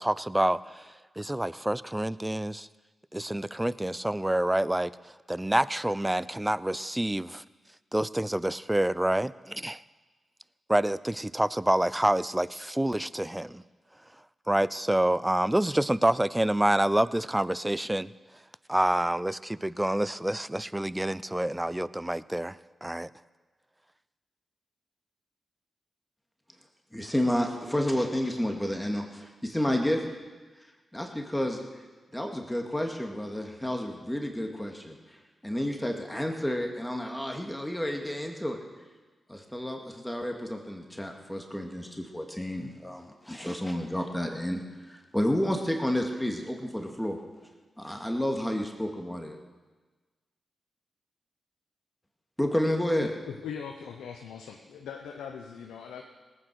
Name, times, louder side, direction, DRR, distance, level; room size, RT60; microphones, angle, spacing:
voice 1, 0.0-2.7 3.1-7.4 7.9-9.8 10.7-13.6 14.5-18.1 18.7-23.1, right 1 dB, 15° right, 18 dB, 0.5 m, -27 dB
voice 2, 26.9-30.0 30.9-31.8 32.1-35.2 35.4-38.6 39.3-47.2 47.8-49.4 52.4-53.1, left 1 dB, 10° left, 2 dB, 2.3 m, -30 dB
voice 3, 53.0-56.0, left 7 dB, 90° left, 3 dB, 0.8 m, -40 dB
18.5 x 9.0 x 6.4 m, 1.3 s
supercardioid pair, 40°, 0 cm